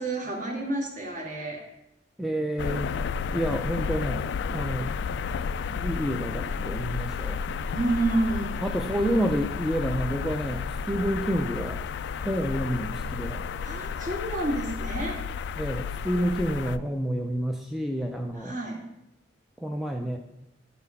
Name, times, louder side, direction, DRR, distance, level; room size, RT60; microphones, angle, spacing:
voice 1, 0.0-1.6 7.7-8.5 13.6-15.2 18.4-18.8, right 2 dB, 45° right, 0 dB, 1.7 m, -29 dB
voice 2, 2.2-3.0 3.3-4.9 5.7-7.4 8.6-11.8 12.2-13.4 15.6-18.6 19.6-20.2, equal, ahead, 2 dB, 0.5 m, -29 dB
sound 1, 2.6-16.8, left 6 dB, 65° left, 0.3 m, -32 dB
9.6 x 4.2 x 5.4 m, 0.85 s
head